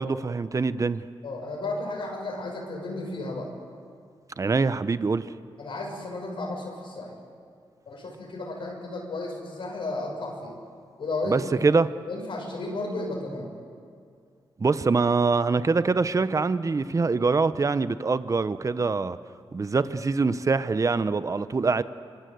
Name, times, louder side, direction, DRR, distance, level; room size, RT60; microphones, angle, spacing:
voice 1, 0.0-1.0 4.4-5.3 11.3-11.9 14.6-19.2 19.5-21.8, right 4 dB, 35° right, 0.9 m, -24 dB
voice 2, 1.2-3.5 5.6-7.2 7.9-10.5 11.0-11.5 12.1-13.5, left 2 dB, 70° left, 6.8 m, -33 dB
25.0 x 24.0 x 8.0 m
cardioid pair, 65°, 9 cm